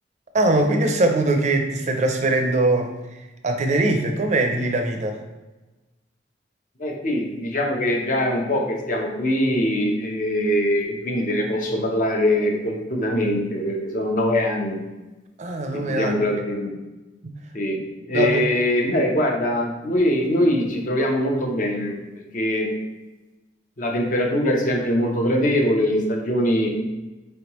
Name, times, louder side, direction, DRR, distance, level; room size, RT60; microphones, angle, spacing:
voice 1, 0.3-2.9 3.4-5.2 15.4-16.1 17.2-17.3 18.1-18.4, right 2 dB, 40° right, 4 dB, 0.5 m, -21 dB
voice 2, 6.8-14.8 15.7-16.7 17.5-22.7 23.8-26.7, left 1 dB, 45° left, 1 dB, 0.7 m, -22 dB
4.5 x 3.3 x 3.0 m, 1.1 s
head